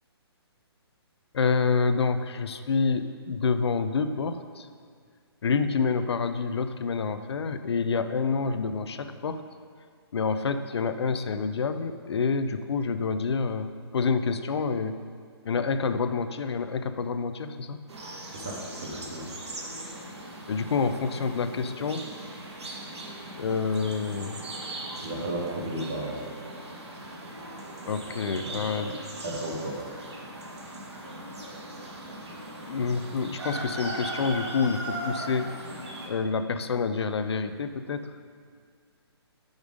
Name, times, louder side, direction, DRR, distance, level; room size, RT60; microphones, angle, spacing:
voice 1, 1.3-4.7 5.4-9.4 10.1-15.0 15.5-17.8 20.5-22.1 23.4-24.4 27.9-28.9 32.7-35.5 36.1-38.1, left 5 dB, 75° left, 10 dB, 0.4 m, -28 dB
sound 1, 17.9-36.1, right 1 dB, 85° right, 1.3 m, -39 dB
voice 2, 18.3-19.3 25.0-26.2 28.4-28.9 29.2-30.0, right 1 dB, 15° right, -2 dB, 0.3 m, -34 dB
5.2 x 4.8 x 5.0 m, 2.2 s
hypercardioid pair, 175°, 14 cm